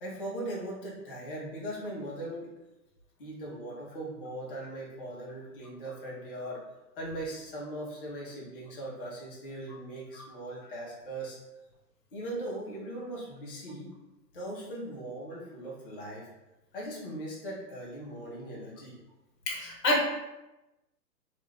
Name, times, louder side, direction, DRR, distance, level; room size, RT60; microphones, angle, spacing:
voice 1, 0.0-2.5 3.2-6.6 7.0-11.4 12.1-13.9 14.3-16.3 16.7-19.0, right 1 dB, 35° left, -5 dB, 0.4 m, -39 dB
voice 2, 19.5-20.0, left 1 dB, 80° left, -1 dB, 1.0 m, -27 dB
2.5 x 2.1 x 3.1 m, 0.98 s
hypercardioid pair, 155°, 50 cm